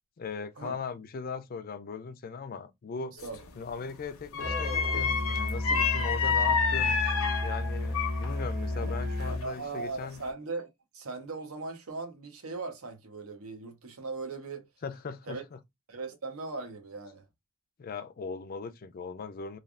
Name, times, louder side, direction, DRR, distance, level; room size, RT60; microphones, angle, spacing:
voice 1, 0.2-3.2 3.6-7.0 7.4-10.2 14.8-15.6 17.8-19.6, left 5 dB, 45° left, 0.4 m, -39 dB
sound 1, 3.2-3.5 4.3-8.4 8.7-9.7 10.1-10.3, left 5 dB, 70° left, 0.7 m, -29 dB
Musical instrument, 4.4-9.5, left 2 dB, 55° right, 1.2 m, -32 dB
voice 2, 9.3-14.7 15.3-15.4 15.9-17.2, right 3 dB, 80° right, 0.8 m, -39 dB
3.3 x 2.3 x 2.3 m
head